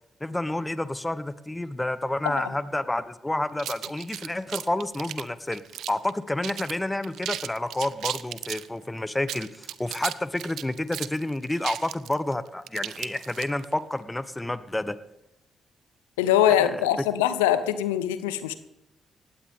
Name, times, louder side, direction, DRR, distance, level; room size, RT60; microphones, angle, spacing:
voice 1, 0.2-5.6 5.9-15.0 16.6-16.7, left 1 dB, 15° left, 14 dB, 1.1 m, -29 dB
sound 1, 3.6-6.1 6.4-6.8 7.0-8.7 9.2-13.7, right 11 dB, 70° right, 0.6 m, -35 dB
voice 2, 16.2-18.5, left 11 dB, 90° left, 13 dB, 0.8 m, -23 dB
19.0 x 15.5 x 3.6 m, 0.90 s
hypercardioid pair, 45°, 0 cm